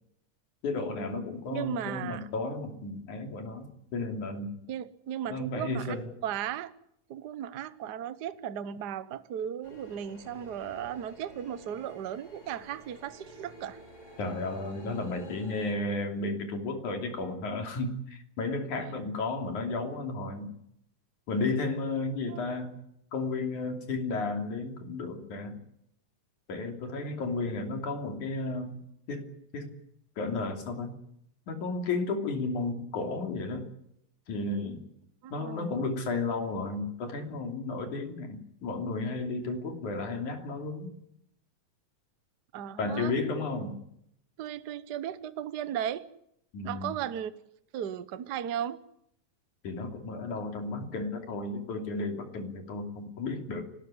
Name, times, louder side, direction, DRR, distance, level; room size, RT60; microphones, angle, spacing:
voice 1, 0.6-4.5 5.3-6.1 14.2-20.5 21.3-22.8 23.1-25.6 26.5-28.8 29.1-29.8 30.2-31.0 31.5-33.6 34.3-34.8 35.3-40.9 42.8-43.8 46.5-47.0 49.6-53.6, left 3 dB, 75° left, 4 dB, 4.4 m, -33 dB
voice 2, 1.5-2.3 4.7-5.9 6.2-6.7 7.1-13.8 22.3-22.5 35.2-35.9 42.5-43.1 44.4-46.0 46.6-47.3 47.7-48.8, right 10 dB, 90° right, 13 dB, 0.9 m, -36 dB
sound 1, 9.6-15.7, left 1 dB, 30° left, 7.9 m, -51 dB
28.0 x 13.5 x 9.9 m, 0.75 s
omnidirectional pair, 3.5 m